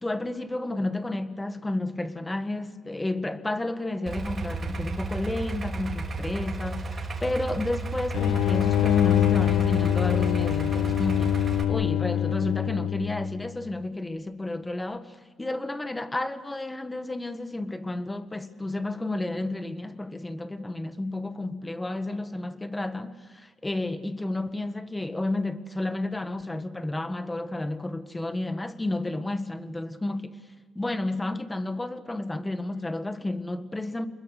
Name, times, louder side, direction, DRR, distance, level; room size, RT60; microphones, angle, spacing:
voice 1, 0.0-11.4 11.7-30.4 30.7-34.1, left 2 dB, 15° left, 1.7 m, -31 dB
Idling, 4.1-11.6, right 3 dB, 40° right, 3.7 m, -33 dB
sound 1, 8.1-13.5, left 12 dB, 80° left, 0.7 m, -24 dB
28.5 x 21.5 x 6.6 m
cardioid pair, 90°, 0 cm